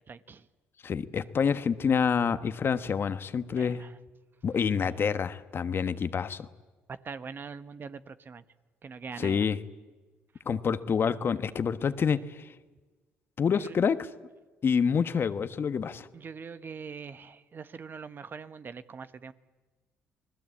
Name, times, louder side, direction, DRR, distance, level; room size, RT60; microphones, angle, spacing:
voice 1, 0.1-0.4 3.6-3.9 6.9-8.4 8.8-9.4 13.6-13.8 16.1-19.3, right 5 dB, 45° right, 12 dB, 1.2 m, -42 dB
voice 2, 0.8-3.8 4.4-6.5 9.2-9.6 10.5-12.5 13.4-14.0 14.6-16.1, left 6 dB, 50° left, 12 dB, 1.3 m, -27 dB
28.5 x 19.5 x 8.6 m, 1.3 s
supercardioid pair, 65°, 5 cm